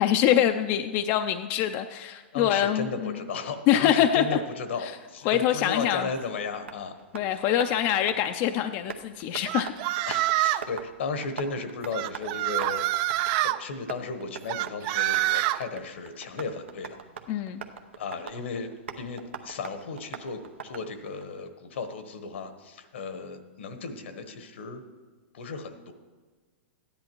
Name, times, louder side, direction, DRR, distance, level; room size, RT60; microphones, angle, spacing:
voice 1, 0.0-3.2 3.7-4.4 4.8-4.9 5.3-6.1 7.1-9.7 17.3-17.7, left 11 dB, 40° left, 8 dB, 0.4 m, -24 dB
voice 2, 2.3-6.9 10.1-12.9 13.2-17.0 18.0-18.7 19.0-24.8 25.3-25.9, left 4 dB, 75° left, 9 dB, 1.1 m, -35 dB
Tap, 5.7-21.2, right 6 dB, 90° right, 0.8 m, -44 dB
sound 1, 9.5-10.7 11.9-13.6 14.5-15.6, right 16 dB, 40° right, 0.3 m, -26 dB
14.0 x 10.5 x 3.0 m, 1.4 s
hypercardioid pair, 125°, 6 cm